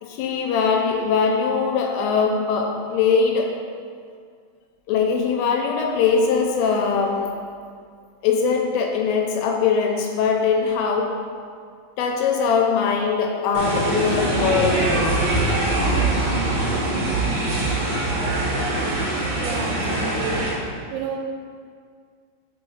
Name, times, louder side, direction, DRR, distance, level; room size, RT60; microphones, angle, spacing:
voice 1, 0.0-3.5 4.9-7.3 8.2-11.1 12.0-14.9, left 5 dB, 85° left, 2 dB, 3.1 m, -21 dB
sound 1, 13.5-20.5, right 2 dB, 60° right, 1.8 m, -23 dB
voice 2, 19.4-20.6 20.9-21.2, right 5 dB, 90° right, 2 dB, 3.4 m, -31 dB
5.7 x 5.7 x 5.6 m, 2.1 s
omnidirectional pair, 5.9 m